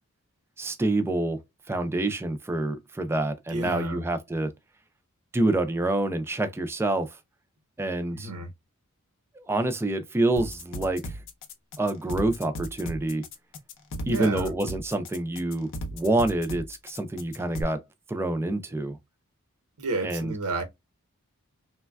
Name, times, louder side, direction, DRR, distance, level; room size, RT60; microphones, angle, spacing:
voice 1, 0.6-1.4 1.7-4.5 5.3-7.2 7.8-8.3 9.4-11.2 11.8-13.2 14.0-17.8 18.1-19.0 20.0-20.3, right 2 dB, 10° right, 0.3 m, -27 dB
voice 2, 3.5-4.0 8.1-8.5 14.1-14.5 19.8-20.6, right 3 dB, 90° right, 0.9 m, -31 dB
sound 1, 10.4-17.6, equal, 60° left, 0.6 m, -36 dB
3.2 x 2.2 x 2.2 m
head